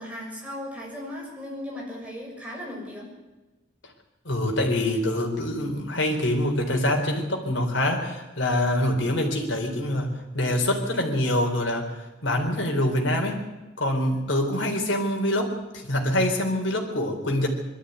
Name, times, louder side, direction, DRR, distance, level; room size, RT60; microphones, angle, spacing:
voice 1, 0.0-3.1, left 1 dB, 5° right, -3 dB, 6.9 m, -37 dB
voice 2, 4.2-13.4 13.8-17.5, left 1 dB, 65° left, 2 dB, 4.1 m, -25 dB
21.5 x 13.5 x 9.3 m, 1.1 s
head